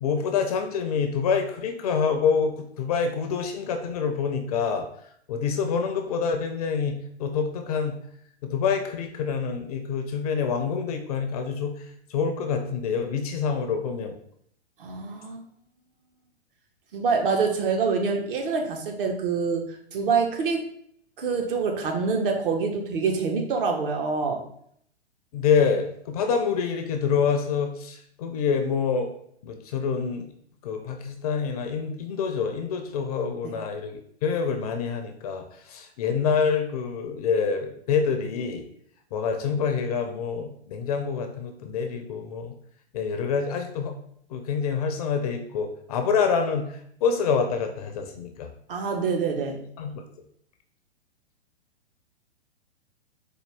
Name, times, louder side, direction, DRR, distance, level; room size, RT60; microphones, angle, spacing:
voice 1, 0.0-4.9 5.3-8.0 8.4-11.7 12.1-14.1 25.3-29.1 29.4-30.3 30.6-38.6 39.1-42.6 42.9-43.9 44.3-46.7 47.0-48.5 49.8-50.0, left 6 dB, 35° left, 5 dB, 0.4 m, -26 dB
voice 2, 14.8-15.4 16.9-20.7 21.2-24.4 33.4-33.5 48.7-49.6, right 5 dB, 55° right, 3 dB, 0.8 m, -26 dB
4.2 x 2.3 x 3.3 m, 0.67 s
hypercardioid pair, 120°, 33 cm